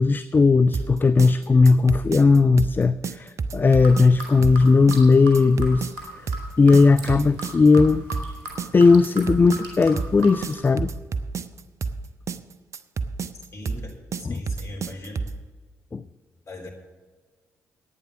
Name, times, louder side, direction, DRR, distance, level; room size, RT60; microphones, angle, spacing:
voice 1, 0.0-5.9 6.6-8.0 8.7-10.9 14.2-14.4 15.9-16.0, left 4 dB, 30° left, 13 dB, 0.4 m, -17 dB
sound 1, 0.7-15.4, right 4 dB, 45° right, 0.7 m, -30 dB
sound 2, 3.7-10.6, right 1 dB, 80° right, 2.3 m, -38 dB
voice 2, 13.5-15.2 16.5-16.7, left 1 dB, 45° left, -1 dB, 3.6 m, -39 dB
11.0 x 9.3 x 7.0 m, 1.4 s
hypercardioid pair, 45°, 7 cm